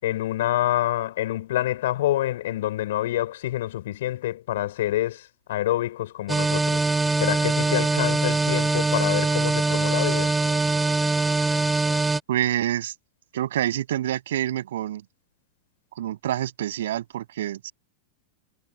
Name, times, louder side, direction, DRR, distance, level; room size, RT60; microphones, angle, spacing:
voice 1, 0.0-5.2 5.5-6.8 7.2-10.3, left 14 dB, 55° left, 5.8 m, -27 dB
sound 1, 6.3-12.2, right 3 dB, 10° right, 6.5 m, -23 dB
voice 2, 12.3-12.9 13.3-15.0 16.0-17.7, right 12 dB, 60° right, 7.8 m, -27 dB
figure-of-eight pair, 90°, 0 cm